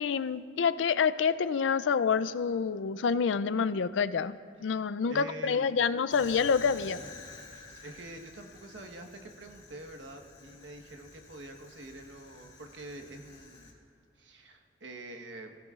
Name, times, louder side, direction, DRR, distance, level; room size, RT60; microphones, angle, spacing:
voice 1, 0.0-7.0, left 6 dB, 85° left, 14 dB, 0.4 m, -28 dB
voice 2, 5.1-5.8 7.5-13.8 14.1-15.6, right 1 dB, 80° right, 3 dB, 1.2 m, -46 dB
Fire, 6.1-13.7, left 3 dB, 35° left, 2.9 m, -50 dB
24.0 x 16.0 x 2.4 m, 2.2 s
head